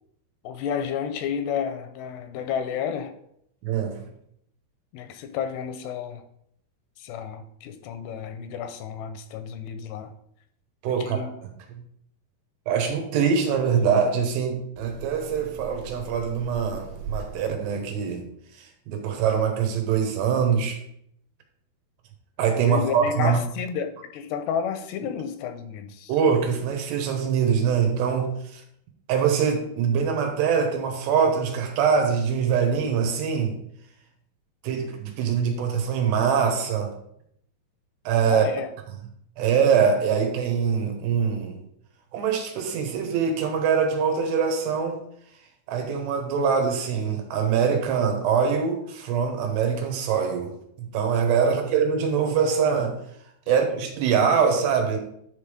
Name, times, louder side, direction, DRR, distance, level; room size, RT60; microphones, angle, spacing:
voice 1, 0.4-3.1 4.9-6.2 7.0-10.1 10.9-11.3 22.6-26.1 38.3-38.7 51.4-51.6 53.5-53.8, left 7 dB, 85° left, 8 dB, 2.6 m, -31 dB
voice 2, 3.6-4.0 10.8-11.3 11.7-11.8 12.7-18.3 18.9-20.8 22.4-23.4 26.1-28.6 29.1-33.5 34.6-36.9 38.1-38.4 39.4-41.6 42.1-45.0 45.7-53.0 53.5-55.0, right 6 dB, 85° right, 4 dB, 3.2 m, -23 dB
10.0 x 3.5 x 4.9 m, 0.72 s
omnidirectional pair, 4.9 m